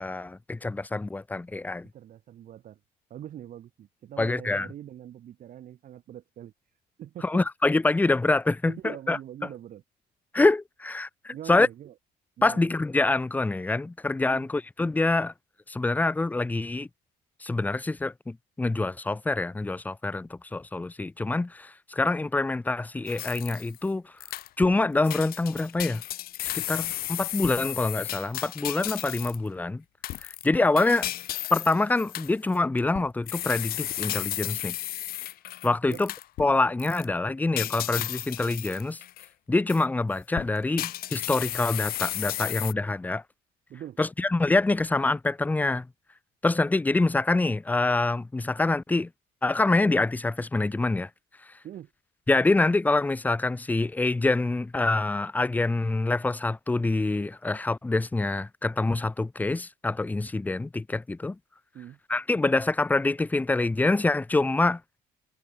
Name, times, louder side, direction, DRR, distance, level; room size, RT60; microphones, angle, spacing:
voice 1, 0.0-1.9 4.2-4.7 7.2-9.2 10.3-11.7 12.4-15.3 15.7-16.9 17.4-24.0 24.6-26.0 26.5-29.8 30.2-31.1 31.5-34.8 35.6-36.1 36.4-39.0 39.5-43.2 44.0-45.9 46.4-49.1 49.4-51.1 52.3-61.4 62.1-64.8, left 2 dB, 10° left, 0.5 m, -25 dB
voice 2, 1.9-2.8 3.1-6.5 7.0-7.4 8.7-9.8 11.3-11.9 12.4-12.7 14.3-14.5 35.9-36.1 43.7-44.0 51.6-51.9 61.7-62.0, right 11 dB, 55° right, 1.2 m, -42 dB
sound 1, 23.1-23.8 24.2-24.8 25.0-29.5 30.0-36.5 36.8-37.0 37.6-39.3 39.7-39.8 40.3-42.7, left 14 dB, 65° left, 0.6 m, -34 dB
cardioid pair, 110°, 17 cm